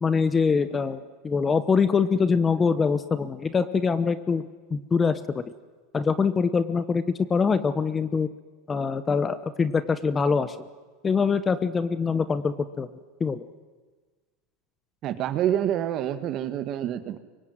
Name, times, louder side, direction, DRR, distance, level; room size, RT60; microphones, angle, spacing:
voice 1, 0.0-4.4 4.7-5.4 5.9-7.0 7.3-8.3 8.7-10.6 11.0-12.9 13.2-13.4, left 5 dB, 15° left, 13 dB, 1.0 m, -24 dB
voice 2, 15.0-17.2, right 11 dB, 35° right, 11 dB, 1.9 m, -27 dB
26.0 x 23.5 x 9.4 m, 1.3 s
supercardioid pair, 160°, 0 cm